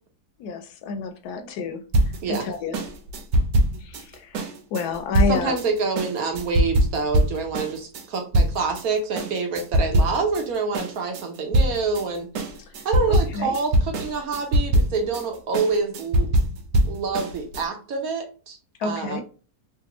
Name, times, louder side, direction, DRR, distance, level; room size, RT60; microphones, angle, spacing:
voice 1, 0.4-1.8 2.3-2.8 3.8-5.6 13.1-13.5 18.8-19.2, left 4 dB, 75° left, 6 dB, 1.1 m, -29 dB
sound 1, 1.9-8.9 9.2-10.5 10.7-17.6, right 1 dB, 90° right, 1.2 m, -23 dB
voice 2, 2.2-2.5 5.3-12.3 12.8-16.3 16.8-19.2, right 4 dB, 65° right, 3 dB, 1.1 m, -27 dB
3.3 x 2.5 x 2.9 m, 0.37 s
omnidirectional pair, 1.8 m